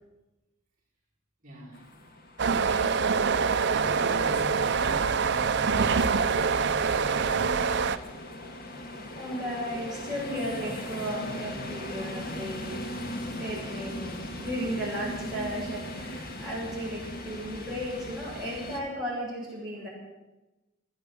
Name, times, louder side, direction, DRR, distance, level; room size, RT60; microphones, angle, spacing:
voice 1, 1.4-1.9 2.5-3.0 3.6-6.0 6.3-7.9, right 1 dB, 40° right, -8 dB, 5.0 m, -41 dB
sound 1, 1.7-18.8, left 1 dB, 50° left, 1.8 m, -39 dB
sound 2, 2.4-8.0, right 5 dB, 60° right, 0.7 m, -25 dB
voice 2, 8.7-19.9, equal, 5° right, -8 dB, 7.7 m, -35 dB
15.5 x 10.0 x 8.4 m, 1.0 s
head